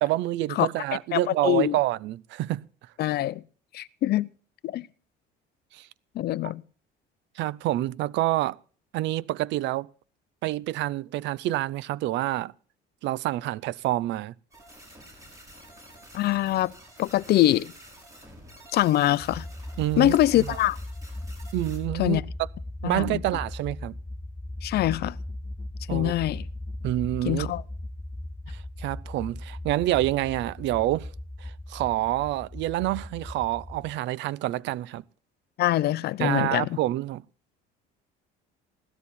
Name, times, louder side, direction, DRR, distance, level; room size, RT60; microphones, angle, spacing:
voice 1, 0.0-2.6 5.7-5.9 6.4-6.5 7.4-8.6 8.9-9.9 10.4-12.5 13.0-14.3 19.8-20.6 21.5-22.2 22.8-23.9 25.9-26.1 26.8-27.5 28.5-31.1 31.4-35.0 36.2-37.2, right 16 dB, 65° right, 0.6 m, -27 dB
voice 2, 1.1-1.8 3.0-3.4 3.7-4.3 4.6-4.9 6.1-6.6 16.1-16.7 17.0-17.7 18.7-19.4 20.0-20.8 22.0-22.2 22.8-23.2 24.6-25.2 25.9-26.4 27.2-27.6 35.6-36.8, left 14 dB, 55° left, 0.6 m, -24 dB
sound 1, 14.5-21.8, right 1 dB, 15° right, 6.7 m, -49 dB
sound 2, 19.2-33.9, left 1 dB, 10° left, 0.7 m, -38 dB
17.0 x 13.0 x 4.2 m
cardioid pair, 135°, 20 cm